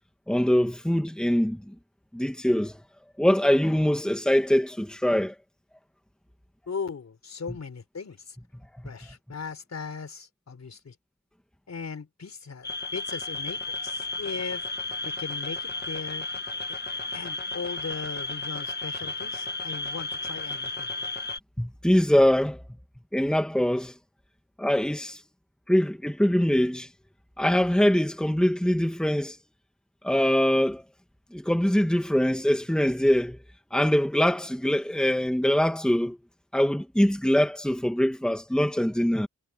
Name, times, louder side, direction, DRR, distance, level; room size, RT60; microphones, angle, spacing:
voice 1, 0.3-1.7 2.1-2.8 3.2-5.4 21.6-22.6 23.1-23.9 24.6-25.2 25.7-26.9 27.4-29.4 30.0-30.8 31.3-33.4 33.7-36.2 36.5-39.3, equal, 5° left, 2.1 m, -23 dB
voice 2, 6.7-8.4 8.8-11.0 11.7-14.7 15.0-16.3 17.1-20.9, left 5 dB, 65° left, 4.2 m, -38 dB
sound 1, 12.6-21.4, left 3 dB, 35° left, 1.7 m, -33 dB
wide cardioid pair, 140°, 29 cm